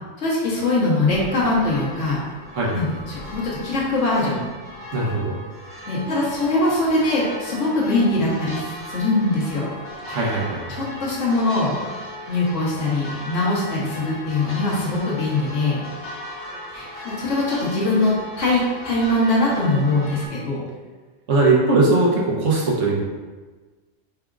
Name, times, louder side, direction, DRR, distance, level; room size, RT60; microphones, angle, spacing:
voice 1, 0.2-2.2 2.7-4.5 5.9-9.7 10.7-11.8 12.3-15.8 16.7-20.6, left 2 dB, 75° left, -6 dB, 1.4 m, -22 dB
sound 1, 1.1-20.3, left 1 dB, 25° left, 1.0 m, -37 dB
voice 2, 2.5-2.9 4.9-5.4 10.1-10.7 16.9-17.2 21.3-23.0, right 3 dB, 80° right, -4 dB, 1.3 m, -20 dB
4.9 x 4.1 x 2.4 m, 1.4 s
omnidirectional pair, 1.3 m